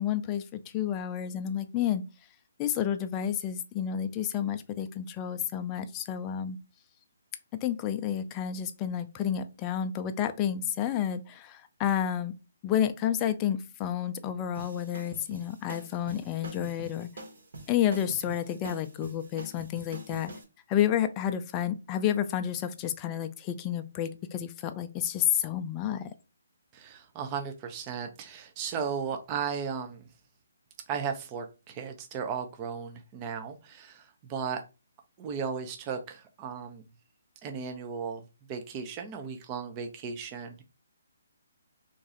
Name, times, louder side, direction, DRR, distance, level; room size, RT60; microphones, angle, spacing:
voice 1, 0.0-2.0 2.6-6.6 7.6-12.3 12.6-17.1 17.7-20.3 20.7-26.1, left 10 dB, 25° left, 8 dB, 0.4 m, -30 dB
sound 1, 14.5-20.4, right 2 dB, 65° right, 1.3 m, -45 dB
voice 2, 26.7-30.1 30.9-34.6 35.2-36.8 37.4-40.6, right 6 dB, 25° right, 5 dB, 0.5 m, -36 dB
3.1 x 2.6 x 3.7 m, 0.29 s
figure-of-eight pair, 145°, 0 cm